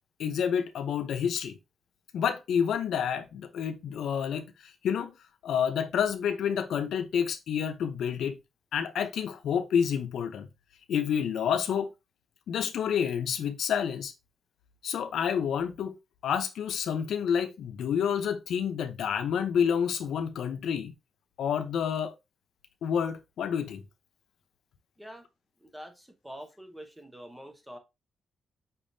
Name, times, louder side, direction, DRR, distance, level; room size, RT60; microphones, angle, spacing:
voice 1, 0.2-1.6 2.1-5.1 5.4-8.4 8.7-10.5 10.9-11.9 12.5-14.1 14.8-16.0 16.2-20.9 21.4-22.1 22.8-23.8, left 8 dB, 90° left, 0.6 m, -29 dB
voice 2, 25.6-27.8, equal, 5° right, 0.9 m, -45 dB
5.7 x 3.5 x 2.6 m
wide cardioid pair, 135°, 0 cm